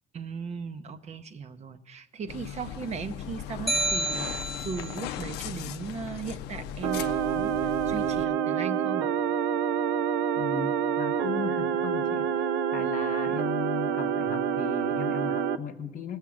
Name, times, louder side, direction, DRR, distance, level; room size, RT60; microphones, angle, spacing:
voice 1, 0.1-9.1, right 5 dB, 40° right, 10 dB, 0.6 m, -38 dB
sound 1, 2.3-8.3, left 10 dB, 90° left, 0.5 m, -38 dB
sound 2, 3.7-5.0, right 2 dB, ahead, 0.6 m, -29 dB
sound 3, 6.8-15.6, right 8 dB, 85° right, 0.4 m, -27 dB
voice 2, 10.3-12.4 12.7-16.2, left 7 dB, 55° left, 8 dB, 0.9 m, -37 dB
18.0 x 7.2 x 6.2 m, 1.0 s
cardioid pair, 110°, 17 cm